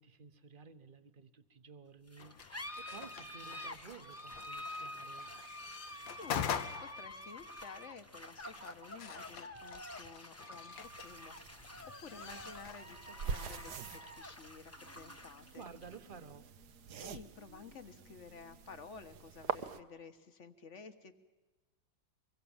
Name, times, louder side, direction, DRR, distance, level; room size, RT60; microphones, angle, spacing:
voice 1, 0.0-5.3 15.5-16.5, right 5 dB, 30° right, 10 dB, 1.3 m, -54 dB
sound 1, 2.1-19.1, left 1 dB, 10° left, 1.0 m, -49 dB
sound 2, 2.2-14.2, left 8 dB, 85° left, 1.8 m, -45 dB
voice 2, 5.9-11.7 12.0-15.6 17.0-21.2, left 5 dB, 40° left, 10 dB, 1.6 m, -53 dB
sound 3, 10.7-19.8, right 7 dB, 65° right, 1.5 m, -45 dB
25.0 x 22.0 x 7.3 m, 1.2 s
omnidirectional pair, 2.0 m